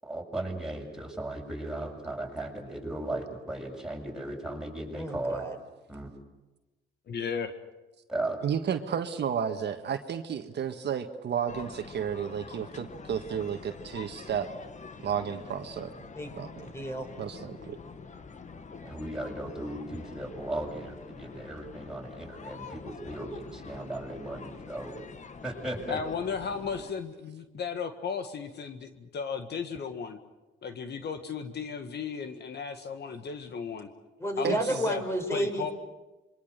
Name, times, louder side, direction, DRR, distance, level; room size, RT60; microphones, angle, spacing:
voice 1, 0.0-5.5 5.9-6.1 8.1-8.4 18.8-24.9 25.4-26.0, right 1 dB, 5° right, -1 dB, 7.2 m, -36 dB
voice 2, 4.9-5.5 16.2-17.1 34.2-35.7, right 1 dB, 15° left, 6 dB, 4.9 m, -31 dB
voice 3, 7.1-7.5 25.9-30.2 30.6-33.9 34.4-35.0 35.3-35.7, left 6 dB, 55° left, 8 dB, 1.7 m, -35 dB
voice 4, 8.4-14.5 15.0-15.9 16.4-16.5 17.2-17.8 34.4-34.6, right 8 dB, 60° right, 7 dB, 1.5 m, -32 dB
sound 1, 11.5-26.9, left 5 dB, 40° left, 1.6 m, -46 dB
27.0 x 24.0 x 6.8 m, 1.1 s
cardioid pair, 90°, 20 cm